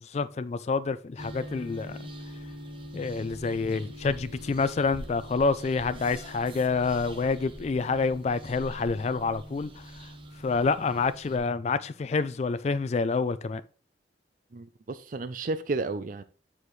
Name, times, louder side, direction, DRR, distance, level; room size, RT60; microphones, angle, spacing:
voice 1, 0.0-2.0 2.9-10.1 10.4-13.6, left 4 dB, 40° left, 0.3 m, -28 dB
sound 1, 1.2-11.4, equal, 30° right, 0.9 m, -43 dB
voice 2, 14.5-16.2, right 3 dB, 50° right, 0.5 m, -32 dB
9.7 x 4.9 x 3.1 m
head